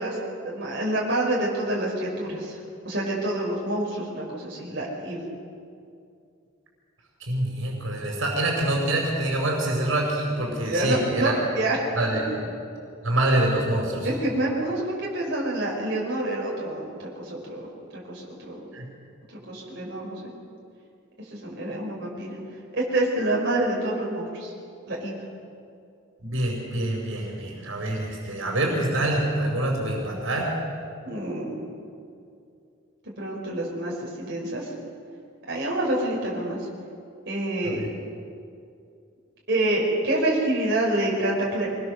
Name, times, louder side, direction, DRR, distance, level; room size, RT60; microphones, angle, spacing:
voice 1, 0.0-2.6 2.8-5.3 10.7-11.8 14.0-18.6 19.3-20.2 21.3-22.4 22.7-24.5 24.9-25.1 31.0-31.6 33.2-34.7 35.5-36.6 37.2-37.8 39.5-41.7, right 1 dB, 55° right, -4 dB, 5.0 m, -27 dB
voice 2, 7.2-11.3 11.9-12.3 13.0-14.1 18.7-18.8 26.2-30.5 37.7-37.9, right 1 dB, 75° right, -1 dB, 5.0 m, -26 dB
24.5 x 20.0 x 6.7 m, 2.5 s
head